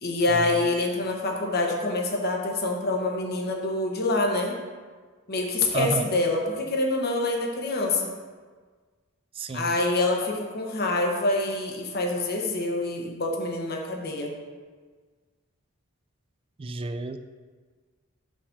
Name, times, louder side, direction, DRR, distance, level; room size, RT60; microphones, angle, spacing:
voice 1, 0.0-4.5 5.3-8.1 9.5-14.3, left 2 dB, 45° left, 0 dB, 1.1 m, -26 dB
voice 2, 5.7-6.1 9.4-9.7 16.6-17.2, right 3 dB, 25° right, 9 dB, 0.3 m, -30 dB
5.4 x 5.1 x 6.4 m, 1.5 s
head